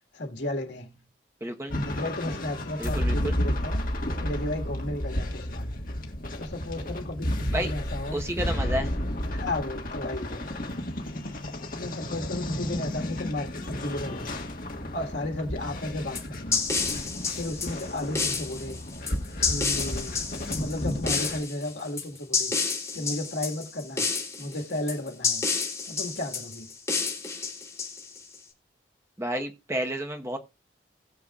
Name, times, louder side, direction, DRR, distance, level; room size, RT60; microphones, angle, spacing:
voice 1, 0.1-1.1 1.8-3.9 4.2-5.8 6.4-8.3 9.3-10.9 11.7-14.4 14.9-16.6 17.3-18.8 19.5-20.3 20.6-22.6 22.9-24.1 24.4-25.4 25.8-26.7, left 1 dB, 90° left, 1.9 m, -34 dB
voice 2, 1.4-1.8 2.8-3.3 7.5-7.7 8.1-8.9 29.2-30.4, right 1 dB, 15° right, 1.1 m, -31 dB
sound 1, 1.7-21.4, left 1 dB, 50° left, 1.7 m, -32 dB
sound 2, 16.2-28.4, left 5 dB, 15° left, 3.1 m, -30 dB
20.0 x 6.9 x 2.4 m
head